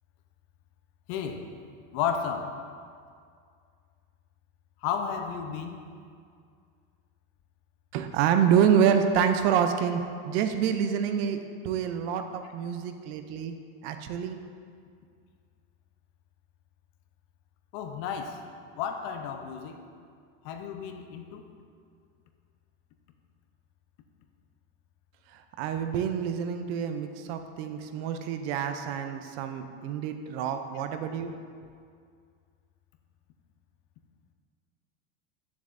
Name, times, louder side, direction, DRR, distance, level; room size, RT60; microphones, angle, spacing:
voice 1, 1.1-1.6 1.9-2.6 4.8-5.9 17.7-18.4 18.8-19.8 20.4-21.4, left 7 dB, 50° left, 6 dB, 0.7 m, -33 dB
voice 2, 7.9-13.6 13.8-14.4 25.3-31.3, right 8 dB, 55° right, 7 dB, 0.6 m, -27 dB
9.5 x 7.0 x 2.6 m, 2.2 s
supercardioid pair, 150°, 38 cm